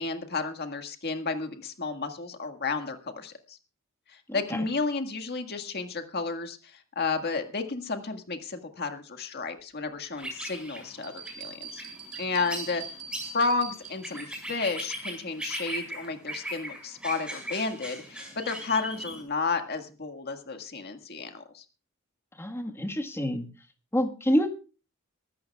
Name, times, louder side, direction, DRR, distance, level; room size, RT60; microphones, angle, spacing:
voice 1, 0.0-3.6 4.1-11.8 12.2-12.8 13.2-21.6, left 4 dB, 50° left, 6 dB, 1.8 m, -32 dB
sound 1, 10.2-19.2, right 1 dB, 5° right, 5.5 m, -39 dB
sound 2, 11.0-14.4, right 5 dB, 45° right, 4.6 m, -43 dB
voice 2, 22.4-23.5 23.9-24.5, equal, 10° left, 4 dB, 1.5 m, -27 dB
23.0 x 13.5 x 2.3 m, 0.33 s
head